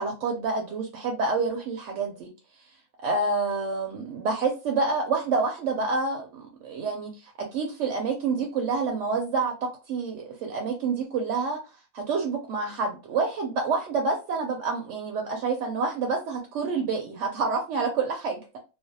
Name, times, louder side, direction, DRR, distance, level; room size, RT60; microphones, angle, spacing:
voice 1, 0.0-2.3 3.0-11.6 11.9-18.4, right 4 dB, 65° right, 0.7 m, -28 dB
2.5 x 2.0 x 2.6 m
omnidirectional pair, 1.5 m